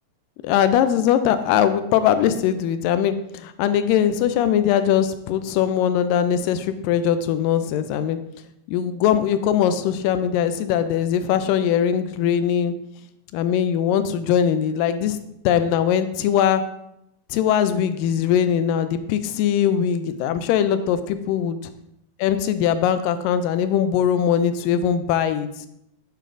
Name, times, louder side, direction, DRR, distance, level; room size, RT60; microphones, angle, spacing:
voice 1, 0.4-8.2 8.7-12.7 13.3-15.2 15.5-16.6 17.3-21.6 22.2-25.5, left 9 dB, 85° left, 11 dB, 2.2 m, -21 dB
8.7 x 7.5 x 2.6 m, 0.80 s
omnidirectional pair, 3.8 m